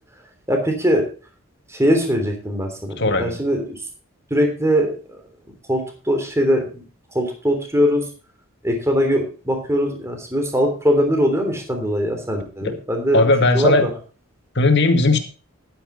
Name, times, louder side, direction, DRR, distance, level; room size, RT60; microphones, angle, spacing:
voice 1, 0.5-1.1 1.7-3.7 4.3-4.9 5.7-6.8 7.1-8.0 8.6-13.2 13.5-13.9, equal, 15° right, 4 dB, 3.2 m, -21 dB
voice 2, 3.0-3.4 12.6-12.8 13.1-13.9 14.5-15.2, left 2 dB, 55° left, 6 dB, 2.1 m, -17 dB
12.0 x 10.0 x 4.1 m, 0.36 s
head